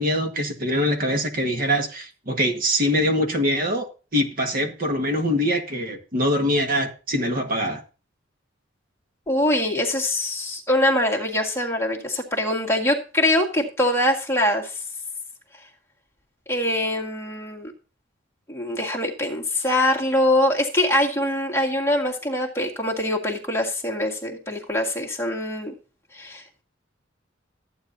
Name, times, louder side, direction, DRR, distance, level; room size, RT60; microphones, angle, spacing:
voice 1, 0.0-3.9 4.1-7.8, equal, 50° right, 1.7 m, -23 dB
voice 2, 9.3-14.7 16.5-17.7 18.5-25.7 26.1-26.6, left 1 dB, 15° left, 1.9 m, -23 dB
14.0 x 9.1 x 2.7 m
head